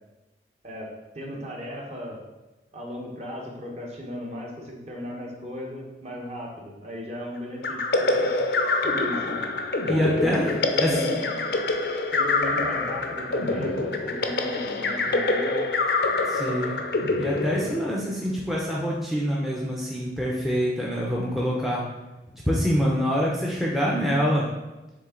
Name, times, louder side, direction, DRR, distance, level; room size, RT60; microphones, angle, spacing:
voice 1, 0.6-2.2 2.7-8.4 8.8-9.4 9.9-11.2 12.1-15.6 17.5-17.7, equal, 35° right, -1 dB, 1.2 m, -36 dB
sound 1, 7.6-18.2, left 3 dB, 65° left, 0.6 m, -26 dB
voice 2, 9.8-10.9 16.3-16.7 17.2-21.8 22.5-24.5, equal, ahead, -4 dB, 0.6 m, -25 dB
7.4 x 3.4 x 3.8 m, 1.1 s
head